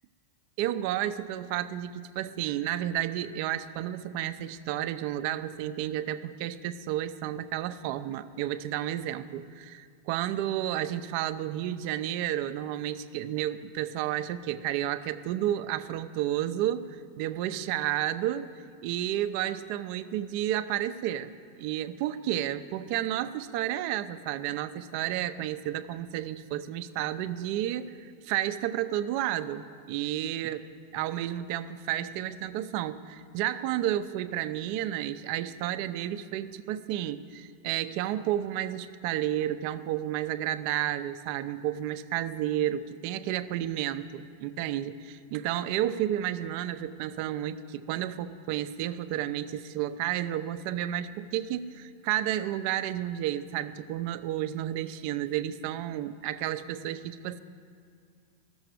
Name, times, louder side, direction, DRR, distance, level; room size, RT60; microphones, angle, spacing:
voice 1, 0.6-18.5 18.8-30.6 30.9-57.4, right 12 dB, 55° right, 12 dB, 0.5 m, -31 dB
13.5 x 7.0 x 9.3 m, 2.2 s
supercardioid pair, 130°, 0 cm